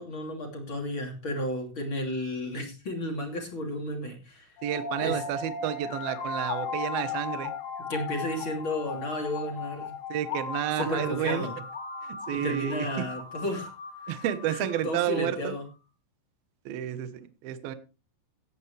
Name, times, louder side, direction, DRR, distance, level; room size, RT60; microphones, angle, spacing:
voice 1, 0.0-4.5 5.0-5.2 7.9-10.0 10.7-11.6 12.4-13.7 14.5-15.6, left 1 dB, 30° left, 2 dB, 2.7 m, -33 dB
sound 1, 4.6-15.5, left 5 dB, 80° left, 5.1 m, -37 dB
voice 2, 4.6-7.5 10.1-11.5 12.0-13.0 14.1-15.5 16.7-17.8, right 11 dB, 75° right, 11 dB, 2.3 m, -31 dB
17.0 x 10.5 x 3.3 m, 0.31 s
omnidirectional pair, 6.0 m